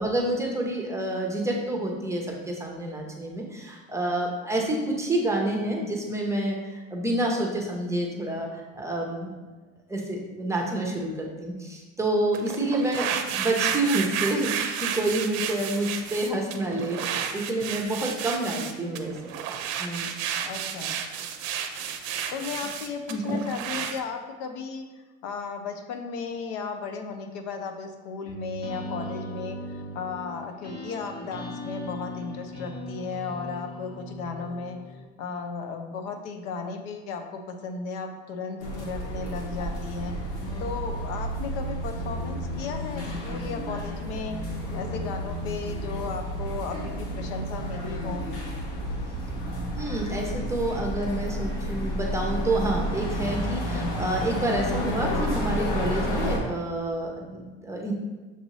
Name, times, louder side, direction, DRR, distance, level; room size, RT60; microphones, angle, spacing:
voice 1, 0.0-9.3 9.9-20.1 20.4-20.5 23.1-23.4 49.7-57.9, right 1 dB, 10° right, -1 dB, 0.8 m, -28 dB
sound 1, 12.3-24.0, right 8 dB, 65° right, 0.6 m, -31 dB
voice 2, 18.8-19.2 20.4-21.0 22.3-40.1 40.6-44.4 44.7-48.2, left 5 dB, 70° left, 5 dB, 0.7 m, -35 dB
sound 2, 28.3-35.0, equal, 45° left, 1.3 m, -39 dB
sound 3, 38.6-56.4, equal, 90° left, 1.2 m, -31 dB
6.7 x 2.6 x 3.1 m, 1.3 s
supercardioid pair, 105°, 34 cm